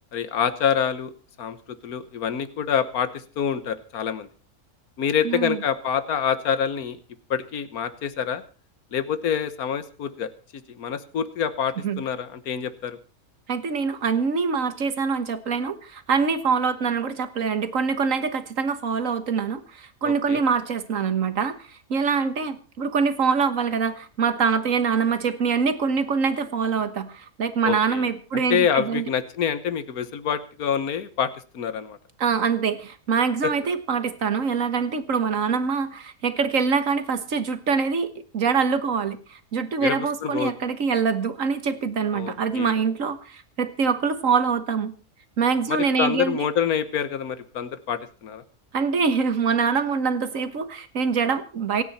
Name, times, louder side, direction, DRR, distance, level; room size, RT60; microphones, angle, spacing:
voice 1, 0.1-1.1 1.4-1.6 1.8-4.3 5.0-7.0 7.3-8.4 8.9-10.3 10.7-13.0 20.0-20.4 27.6-32.0 33.4-33.5 39.8-40.5 42.1-42.8 45.7-48.4, left 8 dB, 85° left, 12 dB, 1.6 m, -26 dB
voice 2, 5.2-5.6 11.8-12.0 13.5-21.6 21.9-29.0 32.2-44.9 45.4-46.5 48.7-51.8, right 5 dB, 60° right, 11 dB, 1.7 m, -24 dB
27.0 x 9.3 x 4.2 m, 0.38 s
omnidirectional pair, 1.5 m